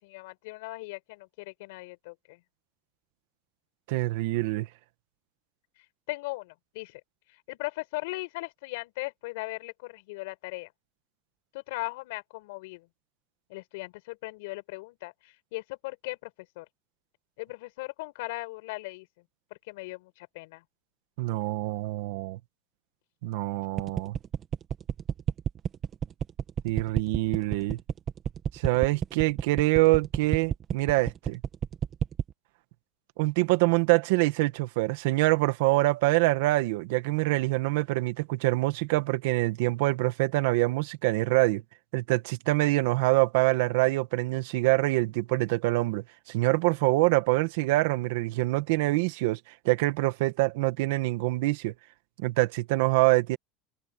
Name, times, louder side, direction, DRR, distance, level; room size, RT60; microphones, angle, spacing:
voice 1, 0.0-2.4 6.1-7.0 7.5-10.7 11.5-12.9 13.5-16.3 16.6-16.7 17.4-19.1 19.7-20.6, left 23 dB, 75° left, 5.1 m, -38 dB
voice 2, 3.9-4.7 21.2-22.4 23.2-24.2 26.6-27.8 28.5-31.4 33.2-41.6 41.9-49.4 49.7-51.7 52.2-53.4, right 20 dB, 70° right, 1.9 m, -25 dB
sound 1, 23.8-32.3, right 9 dB, 25° right, 1.7 m, -29 dB
supercardioid pair, 165°, 0 cm